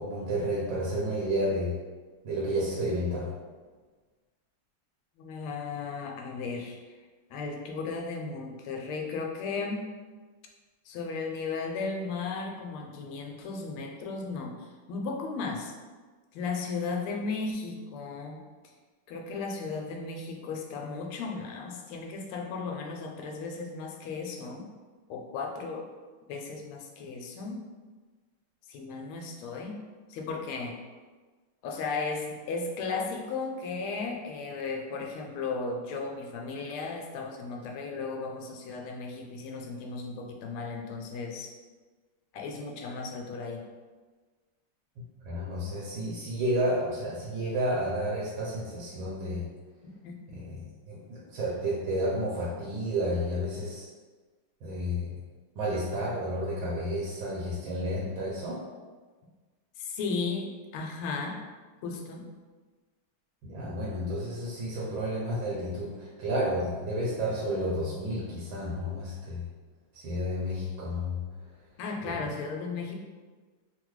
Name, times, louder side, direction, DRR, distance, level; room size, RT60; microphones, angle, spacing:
voice 1, 0.0-1.7 2.2-3.3 45.2-49.5 50.3-53.9 54.6-55.1 55.6-58.6 63.4-69.4 69.9-71.2 72.0-72.2, equal, 75° right, -6 dB, 1.4 m, -31 dB
voice 2, 5.2-6.8 7.3-9.8 10.9-14.5 14.9-15.7 16.3-18.4 19.1-24.7 25.1-25.8 26.3-27.6 28.7-29.8 30.1-30.7 31.6-41.5 42.3-43.6 49.8-50.4 59.8-61.4 61.8-62.3 71.8-72.9, left 4 dB, 80° left, 1 dB, 1.4 m, -35 dB
3.7 x 2.2 x 3.0 m, 1.4 s
omnidirectional pair, 2.4 m